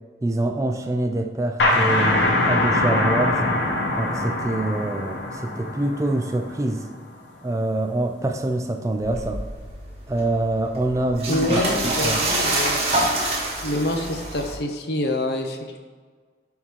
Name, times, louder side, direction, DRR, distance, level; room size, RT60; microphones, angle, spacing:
voice 1, 0.2-3.4 4.0-6.9 7.4-9.4 10.1-11.6 11.8-12.2, right 2 dB, 15° right, 5 dB, 0.3 m, -25 dB
sound 1, 1.6-7.0, left 2 dB, 90° left, 0.9 m, -23 dB
sound 2, 9.0-14.6, right 1 dB, 35° right, 1.1 m, -26 dB
voice 2, 11.3-12.8 13.6-15.8, left 1 dB, 65° left, 5 dB, 0.6 m, -26 dB
9.6 x 3.7 x 3.0 m, 1.5 s
head